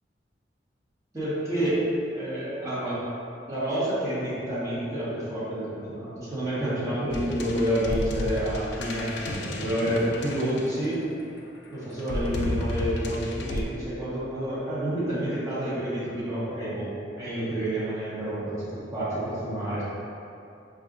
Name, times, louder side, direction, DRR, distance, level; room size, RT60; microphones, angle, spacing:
voice 1, 1.1-1.8 2.1-2.9 3.5-11.0 11.7-19.8, right 1 dB, 20° right, -11 dB, 1.0 m, -29 dB
sound 1, 7.1-11.2 12.0-13.6, left 1 dB, 70° left, 0.3 m, -32 dB
4.2 x 2.4 x 2.5 m, 2.6 s
head